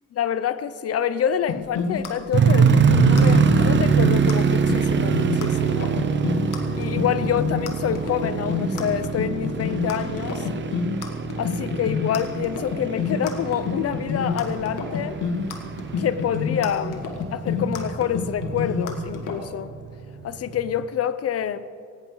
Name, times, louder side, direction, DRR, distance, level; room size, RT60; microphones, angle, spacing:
voice 1, 0.2-6.0 6.8-10.5 11.4-15.2 16.0-19.7 20.2-21.6, left 9 dB, 50° left, 0.7 m, -27 dB
sound 1, 1.5-19.4, left 6 dB, 85° left, 2.0 m, -28 dB
sound 2, 2.3-19.4 20.0-20.1 20.6-20.8, right 6 dB, 40° right, 0.9 m, -24 dB
18.0 x 17.5 x 3.9 m
wide cardioid pair, 170°, 31 cm